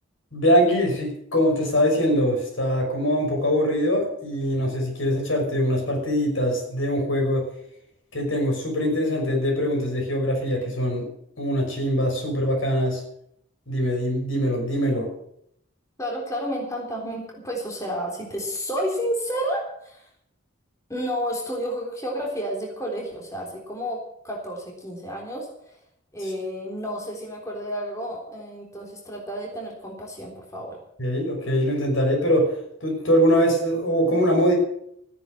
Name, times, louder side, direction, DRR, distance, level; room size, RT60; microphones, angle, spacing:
voice 1, 0.3-7.5 8.1-11.1 11.4-13.0 13.7-15.1 31.0-32.5 32.8-34.5, equal, 75° left, 1 dB, 6.0 m, -22 dB
voice 2, 16.0-20.0 20.9-25.5 26.1-30.8, equal, 15° left, -1 dB, 3.7 m, -31 dB
15.0 x 10.0 x 7.8 m, 0.73 s
head